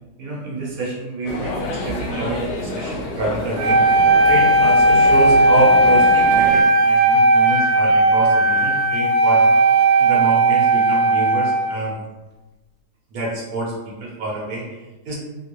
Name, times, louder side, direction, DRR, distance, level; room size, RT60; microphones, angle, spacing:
voice 1, 0.2-9.5 10.0-12.0 13.1-15.1, right 2 dB, 65° right, -5 dB, 1.2 m, -27 dB
sound 1, 1.2-6.6, left 1 dB, 75° left, 1.1 m, -29 dB
Wind instrument woodwind instrument, 3.5-11.8, right 2 dB, 85° right, 1.3 m, -15 dB
3.2 x 2.5 x 3.0 m, 1.1 s
omnidirectional pair, 1.8 m